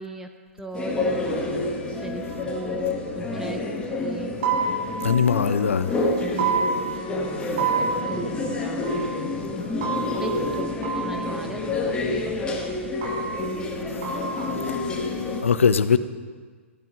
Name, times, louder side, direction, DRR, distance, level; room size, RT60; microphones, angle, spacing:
voice 1, 0.0-1.4 2.0-3.7 4.0-4.3 6.4-7.1 7.6-8.9 10.2-12.4, right 2 dB, 5° right, 0.8 m, -38 dB
sound 1, 0.7-15.4, left 2 dB, 15° left, 1.7 m, -28 dB
sound 2, 2.3-3.6 3.8-3.9 4.3-6.0 6.4-7.3 7.6-12.0 12.4-12.6 12.9-15.3, right 5 dB, 50° right, 2.5 m, -30 dB
voice 2, 5.0-5.9 15.4-16.0, left 6 dB, 70° left, 0.7 m, -20 dB
14.5 x 9.3 x 5.3 m
figure-of-eight pair, 110°, 7 cm